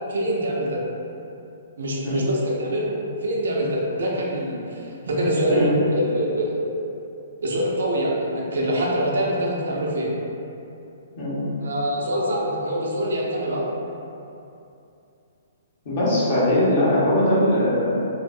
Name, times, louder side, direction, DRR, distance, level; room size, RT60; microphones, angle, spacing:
voice 1, 0.1-0.8 1.8-2.9 3.2-6.6 7.4-10.1 11.6-13.7, equal, 85° right, -4 dB, 0.5 m, -24 dB
voice 2, 11.2-11.5 15.8-18.0, left 1 dB, 45° left, -8 dB, 0.9 m, -21 dB
2.9 x 2.0 x 2.6 m, 2.7 s
hypercardioid pair, 155°, 0 cm